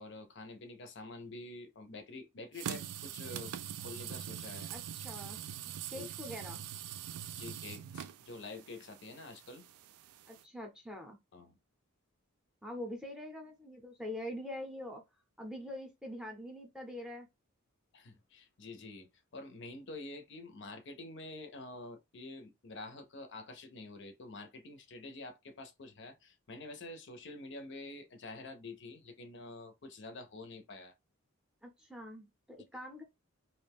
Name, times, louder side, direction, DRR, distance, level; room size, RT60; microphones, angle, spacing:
voice 1, 0.0-4.7 6.0-6.1 7.4-9.7 11.3-11.6 17.9-30.9, left 2 dB, 55° left, 0.5 m, -48 dB
sound 1, 2.5-10.4, right 10 dB, 90° right, 0.3 m, -43 dB
voice 2, 4.7-5.4 5.9-6.6 10.3-11.2 12.6-15.0 15.4-17.3 31.6-33.0, left 1 dB, 5° right, 0.6 m, -44 dB
2.5 x 2.1 x 3.4 m
head